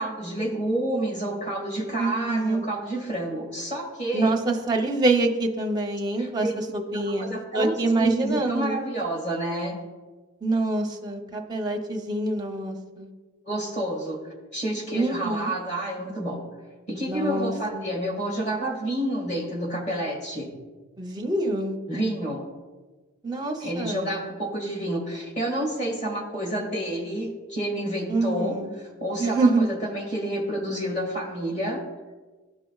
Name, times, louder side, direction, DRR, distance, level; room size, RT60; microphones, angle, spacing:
voice 1, 0.0-4.3 6.2-6.5 6.9-9.8 13.5-16.4 16.9-20.5 21.9-22.4 23.6-31.8, right 1 dB, 35° left, -1 dB, 1.7 m, -29 dB
voice 2, 2.0-2.6 4.1-8.8 10.4-13.1 14.9-15.5 17.1-17.8 21.0-21.8 23.2-24.1 28.1-28.7 29.2-29.6, right 2 dB, 20° right, 2 dB, 0.7 m, -25 dB
13.5 x 4.9 x 2.3 m, 1.3 s
head